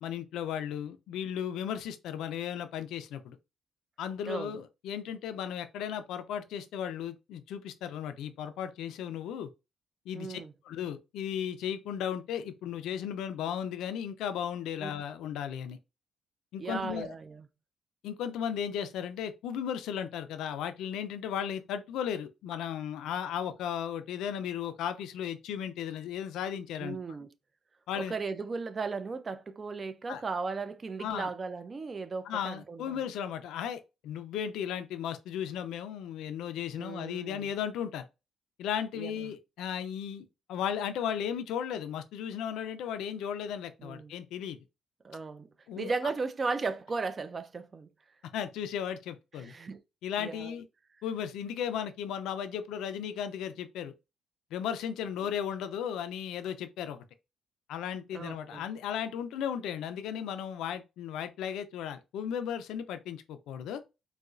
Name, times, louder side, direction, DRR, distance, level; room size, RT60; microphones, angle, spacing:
voice 1, 0.0-3.4 4.0-9.5 10.1-10.4 10.7-15.8 16.5-17.1 18.0-27.0 27.9-28.1 30.1-30.2 31.0-31.3 32.3-38.1 38.6-44.6 45.7-45.9 48.3-49.5 50.0-50.6 51.0-53.9 54.5-57.0 57.7-63.8, left 9 dB, 85° left, 0.4 m, -35 dB
voice 2, 4.3-4.6 10.1-10.5 14.8-14.9 16.6-17.5 26.8-27.3 28.0-33.0 36.8-37.5 38.9-39.3 43.8-44.1 45.0-45.5 45.8-47.9 49.3-49.8 50.2-50.5 55.0-55.1 58.1-58.7, right 4 dB, 25° right, 0.3 m, -36 dB
4.0 x 2.3 x 2.4 m
cardioid pair, 145°, 0 cm